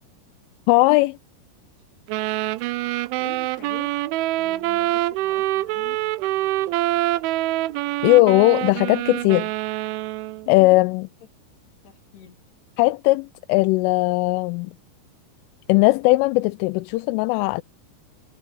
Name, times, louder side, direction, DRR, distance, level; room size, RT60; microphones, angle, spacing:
voice 1, 0.7-1.2 8.0-9.7 10.5-11.0 12.8-14.7 15.7-17.6, left 22 dB, 85° left, 3.1 m, -18 dB
sound 1, 2.1-10.5, right 16 dB, 85° right, 3.1 m, -25 dB
voice 2, 3.2-3.9 4.4-6.2 6.4-6.7 10.4-10.8 11.8-12.4, left 11 dB, 60° left, 4.9 m, -44 dB
omnidirectional pair, 5.6 m